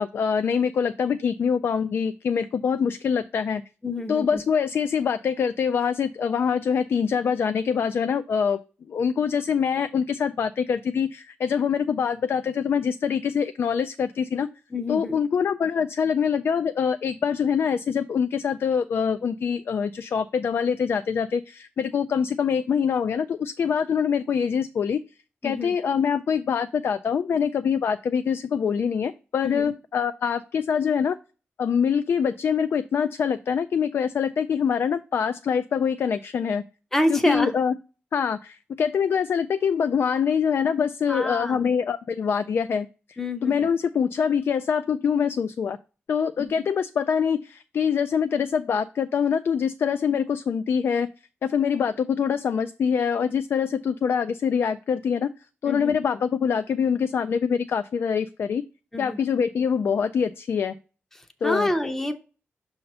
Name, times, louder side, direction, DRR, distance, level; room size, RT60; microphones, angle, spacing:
voice 1, 0.0-3.6 4.1-8.6 8.9-14.5 14.9-25.0 25.4-31.2 31.6-36.6 37.1-37.7 38.1-42.9 43.4-45.8 46.1-51.1 51.4-55.3 55.6-58.6 59.0-60.7 61.4-61.7, left 7 dB, 60° left, 10 dB, 0.3 m, -24 dB
voice 2, 3.8-4.4 14.7-15.2 25.4-25.7 29.4-29.7 36.9-37.5 41.1-41.7 43.2-43.7 46.4-46.6 55.7-55.9 58.9-59.2 61.2-62.1, left 1 dB, 10° left, 7 dB, 0.6 m, -27 dB
6.7 x 2.8 x 5.3 m, 0.33 s
wide cardioid pair, 170°, 4 cm